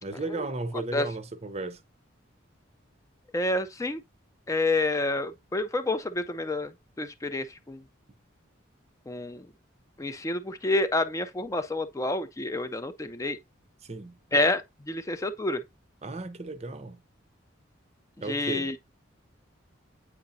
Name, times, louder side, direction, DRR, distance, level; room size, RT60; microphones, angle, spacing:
voice 1, 0.0-1.8 13.8-14.2 16.0-17.0 18.2-18.7, right 2 dB, 30° right, 0.6 m, -35 dB
voice 2, 3.3-4.0 4.5-6.7 7.0-7.8 9.1-9.5 10.0-13.4 14.3-14.6 14.9-15.6 18.3-18.8, left 2 dB, 15° left, 0.4 m, -28 dB
8.4 x 4.8 x 2.6 m
head